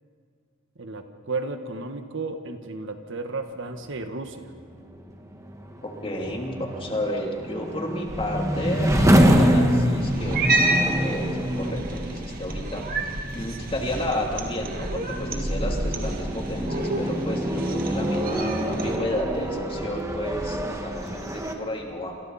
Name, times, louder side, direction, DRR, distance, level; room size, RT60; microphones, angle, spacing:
voice 1, 0.8-4.5, right 3 dB, 65° right, 6 dB, 1.5 m, -33 dB
sound 1, 4.5-21.5, equal, 15° right, 1.8 m, -26 dB
voice 2, 5.8-22.2, left 1 dB, 25° left, 0 dB, 3.1 m, -32 dB
Cat, 10.0-19.0, right 2 dB, 45° right, 2.1 m, -30 dB
28.0 x 27.5 x 4.3 m, 2.1 s
head